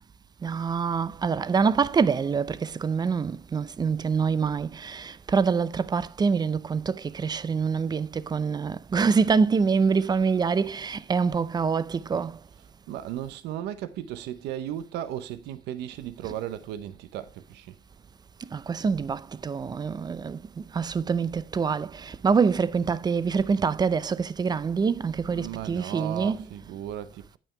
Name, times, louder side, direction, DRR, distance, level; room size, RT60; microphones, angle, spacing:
voice 1, 0.4-12.4 18.5-26.5, right 5 dB, 25° right, 0.5 m, -25 dB
voice 2, 12.6-17.7 25.2-27.4, right 11 dB, 85° right, 0.7 m, -36 dB
8.8 x 6.1 x 4.4 m
cardioid pair, 110°, 17 cm